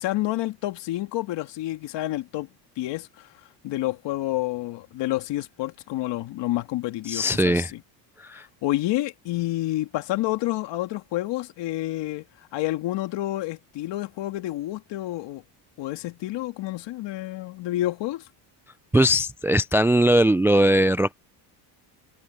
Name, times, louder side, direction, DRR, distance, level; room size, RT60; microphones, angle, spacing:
voice 1, 0.0-2.5 2.8-3.3 3.6-7.8 8.3-12.2 12.5-15.4 15.8-18.2, left 16 dB, 65° left, 2.2 m, -29 dB
voice 2, 7.1-7.7 8.3-8.4 18.9-21.2, equal, 5° right, 0.4 m, -20 dB
cardioid pair, 110°, 46 cm